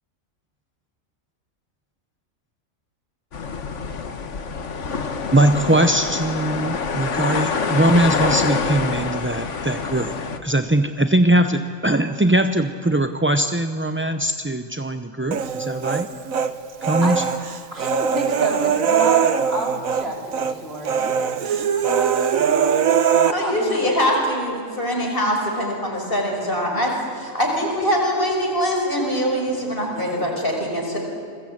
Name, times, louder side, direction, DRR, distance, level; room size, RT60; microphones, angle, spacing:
sound 1, 3.3-10.4, left 5 dB, 60° left, 1.7 m, -26 dB
voice 1, 5.3-10.2 10.4-16.1 16.9-17.2, right 1 dB, 15° right, 8 dB, 0.5 m, -20 dB
Human voice, 15.3-16.5 16.8-20.1 20.3-20.5 20.8-23.3, right 7 dB, 80° right, 1.5 m, -21 dB
voice 2, 17.7-22.5 23.2-23.9 29.9-30.3, right 1 dB, 45° right, -1 dB, 4.8 m, -30 dB
voice 3, 23.3-31.0, equal, 40° left, 0 dB, 6.0 m, -23 dB
28.5 x 21.0 x 8.7 m, 2.4 s
omnidirectional pair, 1.4 m